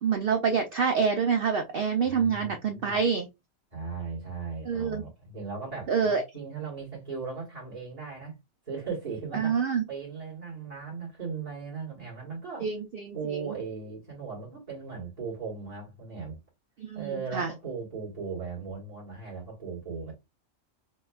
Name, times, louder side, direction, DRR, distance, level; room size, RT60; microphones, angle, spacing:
voice 1, 0.0-3.3 4.7-5.0 5.9-6.2 9.3-9.8 12.6-13.2 16.8-17.5, right 6 dB, 60° right, 0.6 m, -26 dB
voice 2, 2.0-3.0 3.7-8.4 8.7-12.7 13.1-16.4 16.9-20.1, right 5 dB, 25° right, 1.8 m, -37 dB
6.2 x 2.3 x 2.3 m
omnidirectional pair, 1.4 m